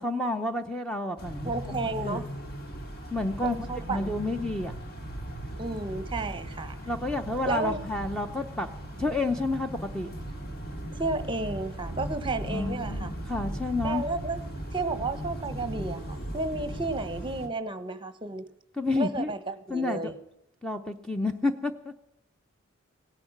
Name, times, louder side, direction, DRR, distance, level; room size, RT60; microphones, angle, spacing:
voice 1, 0.0-2.3 3.1-3.6 3.9-4.7 6.9-8.7 9.0-10.1 12.5-14.0 18.8-19.3 19.7-20.1 20.6-22.0, left 2 dB, 5° left, 5 dB, 0.7 m, -30 dB
sound 1, 1.2-17.5, right 1 dB, 50° left, 2.5 m, -38 dB
voice 2, 1.4-2.2 3.4-4.1 5.6-6.8 7.5-7.8 10.9-13.1 13.8-14.4 14.7-18.4 18.9-20.1, right 2 dB, 25° right, 12 dB, 1.1 m, -32 dB
17.5 x 10.5 x 7.3 m, 0.81 s
head